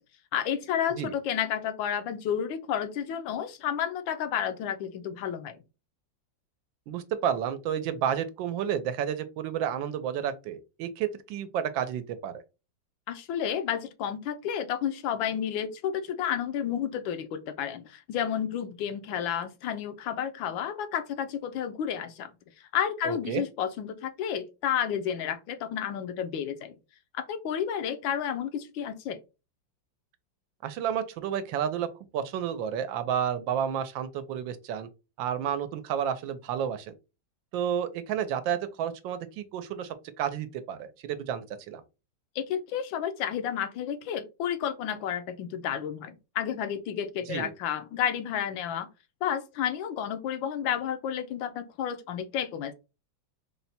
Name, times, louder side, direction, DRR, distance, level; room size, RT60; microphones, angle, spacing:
voice 1, 0.3-5.6 13.1-22.3 22.7-26.8 27.1-29.2 42.4-48.9 49.2-52.7, left 9 dB, 85° left, 1.4 m, -31 dB
voice 2, 6.9-12.3 23.0-23.4 30.6-31.9 32.1-34.9 35.2-36.9 37.5-41.8 47.3-47.5, right 9 dB, 85° right, 1.4 m, -31 dB
4.2 x 2.1 x 4.1 m
omnidirectional pair, 2.0 m